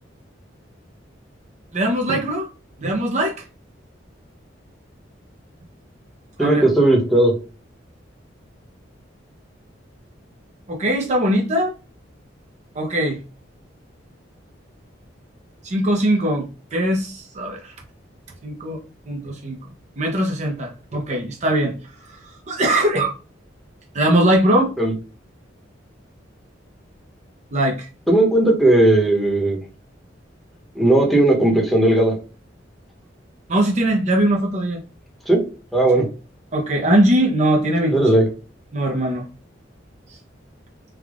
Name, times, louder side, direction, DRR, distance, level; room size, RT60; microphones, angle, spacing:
voice 1, 1.7-2.5 2.8-3.3 6.4-6.6 10.7-11.7 12.8-13.2 15.6-16.4 16.7-17.7 18.4-18.8 19.1-19.6 20.0-21.7 22.5-23.1 23.9-24.7 27.5-27.9 33.5-34.8 36.5-37.9 38.7-39.2, right 1 dB, 40° right, 0 dB, 0.6 m, -20 dB
voice 2, 6.4-7.3 24.8-24.9 28.1-29.6 30.7-32.2 35.2-35.4 35.7-36.0 37.9-38.2, right 1 dB, ahead, -1 dB, 1.0 m, -16 dB
3.4 x 2.3 x 3.5 m, 0.34 s
head